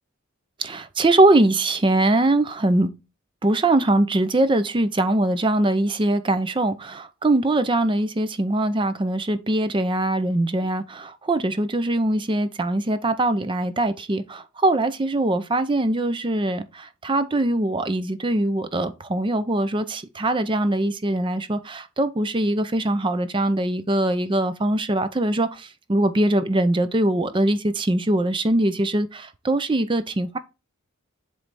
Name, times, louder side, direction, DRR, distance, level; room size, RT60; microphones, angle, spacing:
voice 1, 0.6-2.9 3.4-30.4, right 1 dB, 20° right, 0.5 m, -22 dB
7.8 x 3.2 x 4.1 m
head